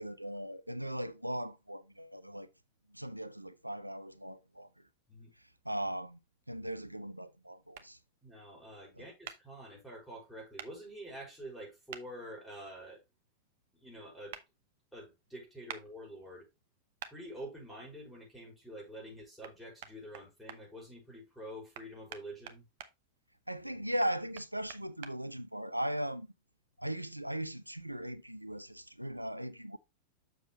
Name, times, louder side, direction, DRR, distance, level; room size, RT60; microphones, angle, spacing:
voice 1, 0.0-2.5 2.9-4.7 5.6-6.2 6.5-8.0 9.0-9.1 23.5-26.3 26.8-29.8, right 1 dB, 90° right, 0.5 m, -38 dB
sound 1, 7.7-7.9 9.2-9.4 10.6-10.7 11.9-12.0 14.3-14.4 15.7-15.8 17.0-17.1 19.4-19.5 19.8-20.6 21.7-22.9 24.0-25.1, right 10 dB, 55° right, 0.8 m, -45 dB
voice 2, 8.2-13.0 13.7-14.4 14.9-16.5 17.1-22.7, right 1 dB, 5° left, 5.5 m, -47 dB
7.3 x 6.7 x 3.1 m
figure-of-eight pair, 90°, 0 cm